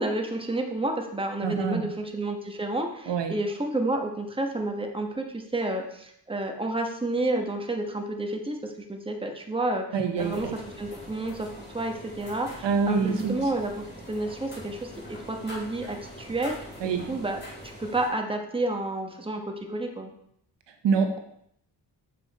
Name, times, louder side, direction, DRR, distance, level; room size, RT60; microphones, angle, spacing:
voice 1, 0.0-9.9 10.2-10.5 10.8-11.5 11.7-17.4 17.8-20.1, right 2 dB, 15° right, 3 dB, 1.2 m, -30 dB
voice 2, 1.4-1.9 3.1-3.4 9.9-10.5 12.6-13.4 16.8-17.2 20.8-21.2, right 5 dB, 90° right, 6 dB, 1.0 m, -26 dB
sound 1, 10.1-18.1, equal, 25° left, 2.7 m, -43 dB
7.3 x 5.5 x 4.1 m, 0.72 s
cardioid pair, 95°, 41 cm